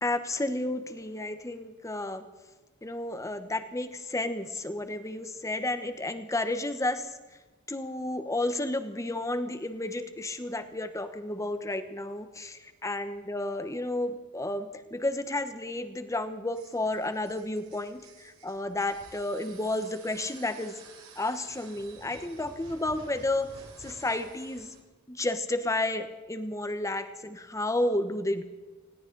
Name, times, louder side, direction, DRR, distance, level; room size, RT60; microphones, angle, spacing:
voice 1, 0.0-2.2 2.8-7.1 7.7-20.8 21.2-23.5 23.8-24.7 25.1-28.4, left 2 dB, 15° left, 9 dB, 1.0 m, -32 dB
sound 1, 16.5-24.8, right 3 dB, 70° right, 3.6 m, -52 dB
20.0 x 17.0 x 3.9 m, 1.2 s
head